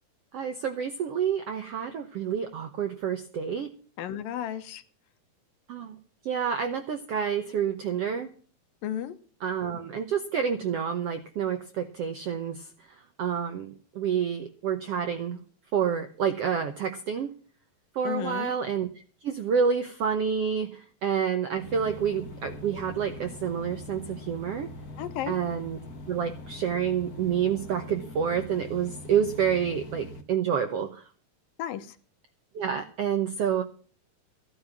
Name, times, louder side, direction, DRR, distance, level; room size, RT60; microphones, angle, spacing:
voice 1, 0.3-3.7 5.7-5.9 6.2-8.3 9.4-12.7 13.2-15.4 15.7-17.3 17.9-18.9 19.2-24.7 25.3-25.8 26.1-31.0 32.5-33.6, right 7 dB, 75° right, 7 dB, 1.4 m, -28 dB
voice 2, 4.0-4.8 8.8-9.2 18.0-18.5 25.0-25.4 31.6-32.0, left 10 dB, 75° left, 10 dB, 2.8 m, -33 dB
sound 1, 21.6-30.2, left 2 dB, 45° left, 1.2 m, -42 dB
15.5 x 10.5 x 5.9 m, 0.42 s
omnidirectional pair, 4.1 m